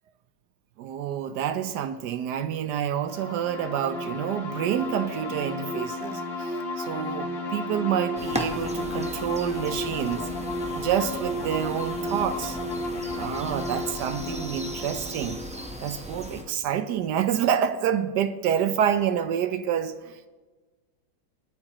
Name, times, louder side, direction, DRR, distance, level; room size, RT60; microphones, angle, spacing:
voice 1, 0.8-10.3 10.7-12.6 13.1-15.4 15.8-20.3, right 9 dB, 70° right, 11 dB, 1.0 m, -28 dB
sound 1, 3.0-16.5, left 2 dB, 80° left, 2.2 m, -33 dB
sound 2, 8.2-16.4, equal, 10° right, 0.4 m, -38 dB
22.0 x 8.6 x 2.9 m, 1.3 s
omnidirectional pair, 2.1 m